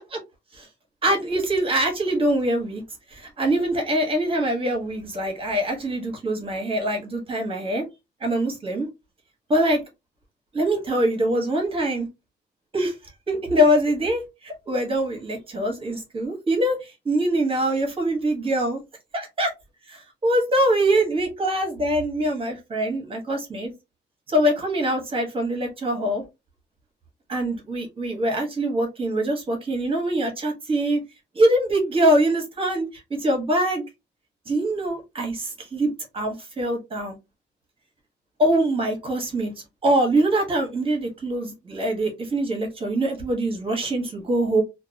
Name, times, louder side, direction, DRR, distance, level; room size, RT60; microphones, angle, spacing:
voice 1, 1.0-2.8 3.1-7.9 8.2-8.9 9.5-9.8 10.5-12.1 12.7-12.9 13.3-18.8 19.1-19.5 19.9-23.7 24.3-26.2 27.3-31.0 31.3-33.8 34.5-35.9 36.1-37.2 38.4-39.5 39.8-44.6, right 1 dB, 30° right, 1.0 m, -23 dB
2.7 x 2.2 x 2.5 m
cardioid pair, 135°, 18 cm